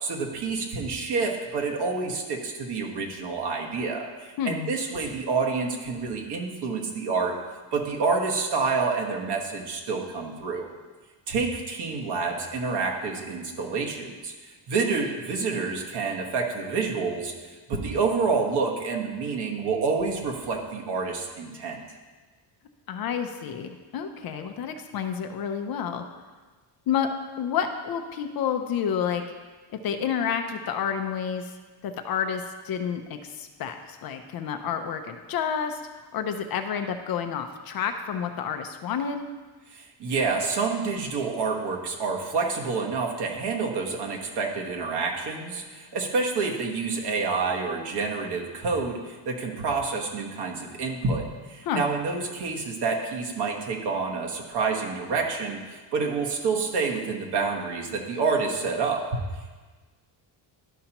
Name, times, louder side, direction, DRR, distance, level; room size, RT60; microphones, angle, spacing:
voice 1, 0.0-7.3 7.7-10.7 11.3-14.3 14.7-17.3 17.7-21.8 39.7-59.0, right 4 dB, 55° right, 1 dB, 1.3 m, -28 dB
voice 2, 22.9-26.0 26.9-27.1 27.4-29.2 29.8-31.5 31.8-35.8 36.1-39.3 51.6-51.8, left 8 dB, 50° left, 7 dB, 0.6 m, -29 dB
11.5 x 5.6 x 2.9 m, 1.3 s
cardioid pair, 150°, 48 cm